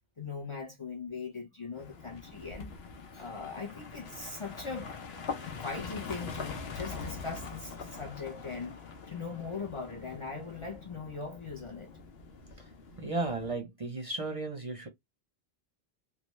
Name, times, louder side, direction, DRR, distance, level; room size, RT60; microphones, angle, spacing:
voice 1, 0.2-2.7 3.1-4.9 5.4-8.8 9.1-11.9, left 4 dB, 35° left, 0.6 m, -40 dB
sound 1, 1.7-13.6, left 5 dB, 75° left, 1.1 m, -43 dB
voice 2, 13.0-14.9, right 2 dB, 40° right, 0.7 m, -34 dB
3.2 x 2.4 x 3.1 m
omnidirectional pair, 1.0 m